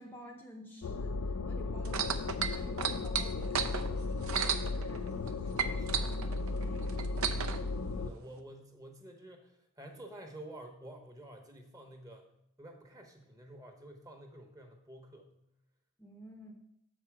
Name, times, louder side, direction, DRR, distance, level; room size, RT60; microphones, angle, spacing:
voice 1, 0.0-7.5 16.0-16.5, equal, 10° left, 2 dB, 0.6 m, -51 dB
sound 1, 0.8-8.1, left 3 dB, 75° left, 0.4 m, -35 dB
sound 2, 1.8-5.3 5.6-7.6 8.4-8.5, right 8 dB, 75° right, 0.6 m, -33 dB
voice 2, 5.2-6.1 6.9-7.2 8.0-12.2 12.6-15.3, right 1 dB, 15° right, 4 dB, 0.9 m, -50 dB
6.6 x 6.0 x 4.6 m, 0.78 s
head